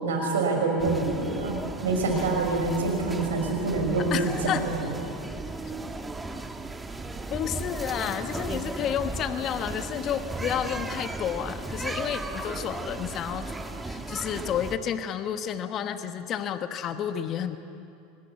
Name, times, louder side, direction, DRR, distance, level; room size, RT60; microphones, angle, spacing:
voice 1, 0.0-4.8, right 3 dB, 80° right, 2 dB, 5.8 m, -26 dB
sound 1, 0.8-14.8, right 2 dB, 15° right, 1.9 m, -36 dB
voice 2, 4.1-4.7 7.3-13.5 13.8-17.6, left 9 dB, 45° left, 9 dB, 1.3 m, -31 dB
25.5 x 20.5 x 8.4 m, 2.7 s
hypercardioid pair, 85°, 0 cm